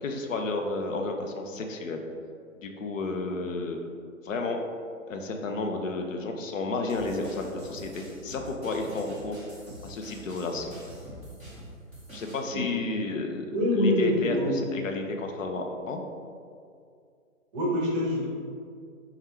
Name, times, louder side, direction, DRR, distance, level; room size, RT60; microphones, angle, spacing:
voice 1, 0.0-2.0 2.6-3.8 4.2-4.6 5.1-9.4 9.8-10.7 12.1-16.0, left 3 dB, 75° left, 3 dB, 0.6 m, -32 dB
sound 1, 6.9-12.4, right 1 dB, 10° left, 0.4 m, -45 dB
voice 2, 13.5-14.5 17.5-18.3, left 1 dB, 25° right, -4 dB, 0.7 m, -25 dB
3.4 x 2.4 x 4.3 m, 2.3 s
hypercardioid pair, 140°, 40 cm